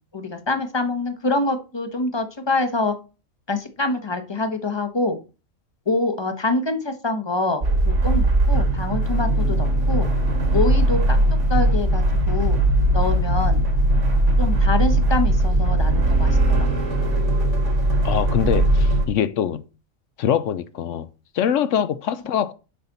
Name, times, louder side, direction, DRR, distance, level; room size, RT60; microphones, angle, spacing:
voice 1, 0.1-2.9 3.5-5.2 5.9-10.1 10.5-11.2 11.5-12.6 12.9-13.6 14.4-16.7, left 2 dB, 25° left, 0.9 m, -25 dB
sound 1, 7.6-19.0, right 1 dB, 60° right, 2.0 m, -19 dB
voice 2, 18.0-19.6 20.2-21.1 21.3-22.5, left 9 dB, 70° left, 0.9 m, -23 dB
7.1 x 5.7 x 3.9 m
omnidirectional pair, 1.4 m